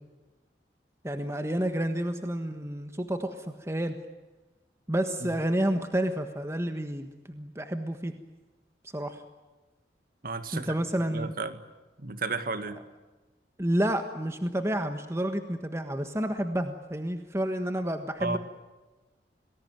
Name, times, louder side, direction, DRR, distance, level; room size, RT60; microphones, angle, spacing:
voice 1, 1.0-4.0 4.9-8.1 8.9-9.2 10.5-11.3 13.6-18.4, right 1 dB, 15° right, 7 dB, 1.4 m, -30 dB
voice 2, 10.2-10.8 11.1-11.6 12.0-12.8 18.2-18.4, right 3 dB, 50° right, 10 dB, 2.0 m, -33 dB
28.5 x 20.5 x 9.2 m, 1.2 s
head